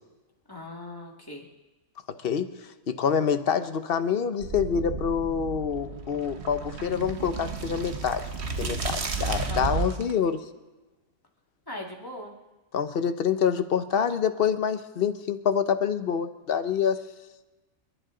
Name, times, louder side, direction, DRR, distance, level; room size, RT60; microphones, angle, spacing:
voice 1, 0.5-1.5 9.5-9.9 11.7-12.3, left 1 dB, 15° left, -1 dB, 2.1 m, -39 dB
voice 2, 2.9-8.2 8.6-10.4 12.7-17.0, left 7 dB, 50° left, 10 dB, 0.9 m, -26 dB
sound 1, 4.4-10.1, right 4 dB, 50° right, 1.3 m, -33 dB
28.5 x 11.5 x 3.8 m, 1.1 s
omnidirectional pair, 1.5 m